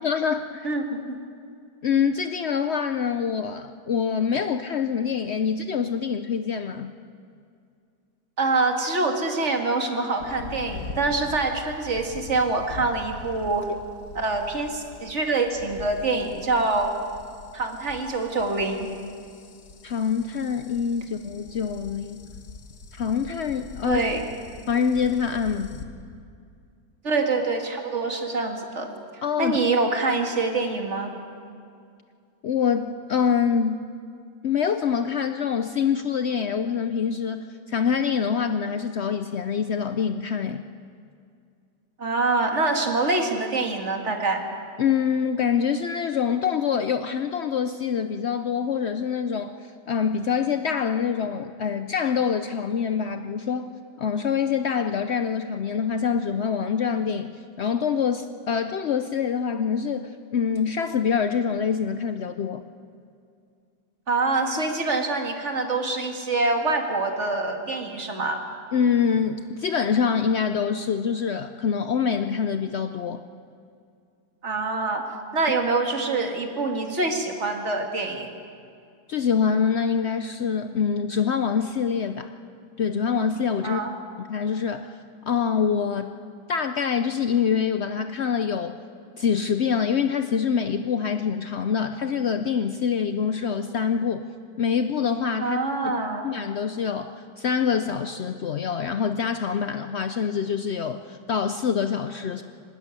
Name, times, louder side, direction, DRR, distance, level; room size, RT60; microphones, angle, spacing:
voice 1, 0.0-0.7 1.8-6.9 19.8-22.3 22.9-24.0 24.7-25.7 29.2-29.6 32.4-33.8 34.4-40.6 44.8-53.7 54.0-62.6 68.7-73.2 79.1-82.3 82.8-83.8 84.3-85.0 85.3-86.1 86.5-88.8 89.2-94.2 94.6-95.6 95.8-95.9 96.2-102.4, left 7 dB, 85° left, 9 dB, 0.5 m, -25 dB
voice 2, 0.6-1.2 8.4-13.7 14.1-16.9 17.5-18.9 23.8-24.2 27.0-28.9 29.4-31.1 42.0-44.4 64.1-68.4 74.4-75.0 75.3-78.3 83.6-83.9 95.4-96.3, right 3 dB, 40° right, 4 dB, 2.2 m, -25 dB
sound 1, 10.2-25.9, left 3 dB, 55° left, 1.7 m, -43 dB
24.5 x 13.0 x 9.6 m, 2.4 s
omnidirectional pair, 1.9 m